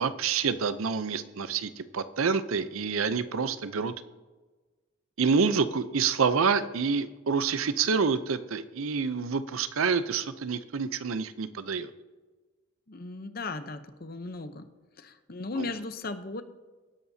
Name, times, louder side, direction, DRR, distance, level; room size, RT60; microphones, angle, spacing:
voice 1, 0.0-3.9 5.2-11.9, right 5 dB, 85° right, 13 dB, 0.6 m, -27 dB
voice 2, 12.9-14.7 15.0-16.4, left 3 dB, 45° left, 9 dB, 0.7 m, -36 dB
20.0 x 10.5 x 2.8 m, 1.3 s
head